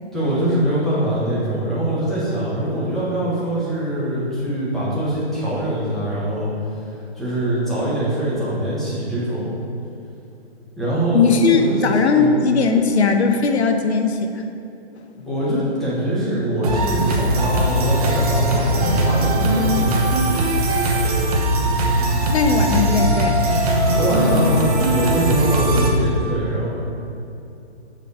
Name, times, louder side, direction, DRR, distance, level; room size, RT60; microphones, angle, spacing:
voice 1, 0.1-6.5 6.8-9.5 10.8-11.9 12.2-12.3 15.2-20.1 23.9-26.7, right 1 dB, ahead, -10 dB, 1.3 m, -23 dB
voice 2, 11.1-14.4 15.2-15.3 22.3-23.4, left 4 dB, 80° left, 5 dB, 0.9 m, -18 dB
sound 1, 16.6-25.9, right 1 dB, 35° right, 1.0 m, -19 dB
7.8 x 4.9 x 4.9 m, 2.8 s
hypercardioid pair, 160°, 32 cm